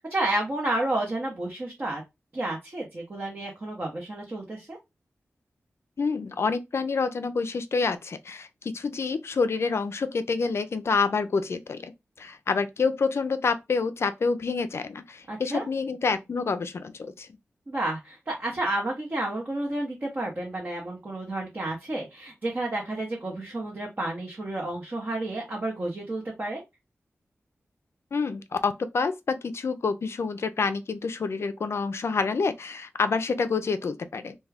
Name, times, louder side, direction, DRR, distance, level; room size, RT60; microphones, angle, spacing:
voice 1, 0.1-2.0 2.3-4.8 15.3-15.6 17.7-26.6, right 2 dB, 40° right, 0.8 m, -31 dB
voice 2, 6.0-11.9 12.2-17.3 28.1-34.4, left 4 dB, 60° left, 0.3 m, -27 dB
2.3 x 2.2 x 3.3 m
wide cardioid pair, 70°, 5 cm